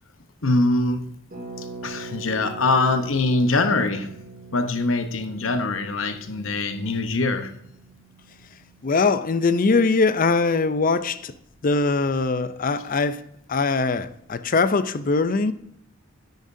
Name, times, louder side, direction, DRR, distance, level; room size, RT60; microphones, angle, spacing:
voice 1, 0.4-1.1 1.6-4.1 4.5-7.5, left 2 dB, 85° left, 0.9 m, -23 dB
Harp, 1.3-10.9 11.2-11.3 11.4-11.8, right 3 dB, 45° right, 2.3 m, -43 dB
voice 2, 8.8-11.3 11.6-13.2 13.5-15.5, left 4 dB, 45° left, 0.5 m, -21 dB
10.0 x 9.1 x 2.7 m
head